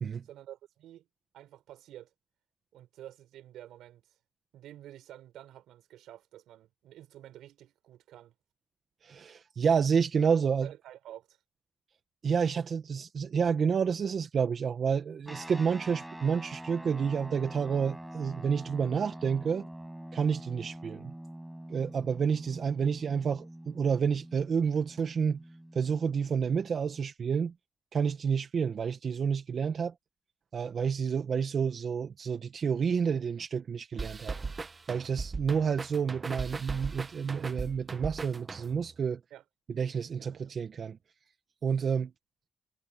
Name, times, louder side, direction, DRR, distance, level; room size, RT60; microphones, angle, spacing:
voice 1, 0.2-1.1 1.3-2.1 2.7-4.1 4.5-8.4 10.3-11.4 39.3-39.4 40.2-40.5, right 12 dB, 90° right, 5.5 m, -50 dB
voice 2, 9.0-10.7 12.2-19.7 20.1-21.1 21.7-25.4 25.7-27.5 27.9-29.9 30.5-34.4 34.9-39.2 39.8-41.0 41.6-42.1, right 6 dB, 55° right, 1.3 m, -29 dB
sound 1, 15.3-27.0, right 1 dB, 5° right, 7.5 m, -45 dB
sound 2, 34.0-38.9, right 4 dB, 30° right, 1.4 m, -38 dB
cardioid pair, 85°, 0 cm